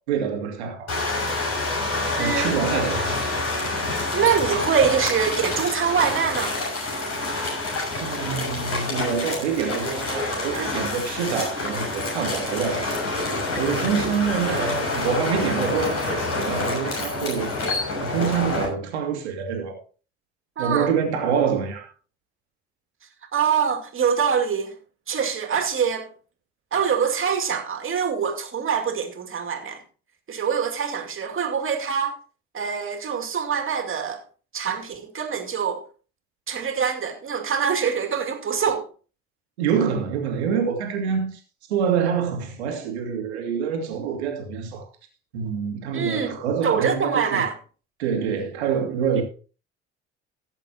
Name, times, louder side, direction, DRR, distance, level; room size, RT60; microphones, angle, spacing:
voice 1, 0.1-0.9 2.2-3.2 8.0-13.0 13.6-17.5 18.0-19.8 20.6-21.9 39.6-41.4 41.7-44.8 45.3-47.5 48.0-49.2, right 7 dB, 80° right, 2.3 m, -26 dB
sound 1, 0.9-18.6, left 2 dB, 50° left, 6.2 m, -27 dB
voice 2, 2.2-2.5 4.1-6.6 20.6-20.9 23.3-24.7 25.1-26.1 26.7-29.8 30.3-32.1 32.5-34.2 34.5-35.8 36.5-38.9 45.9-46.4 46.6-47.5, right 7 dB, 40° right, 2.4 m, -24 dB
16.5 x 8.1 x 2.9 m
figure-of-eight pair, 55°, 33 cm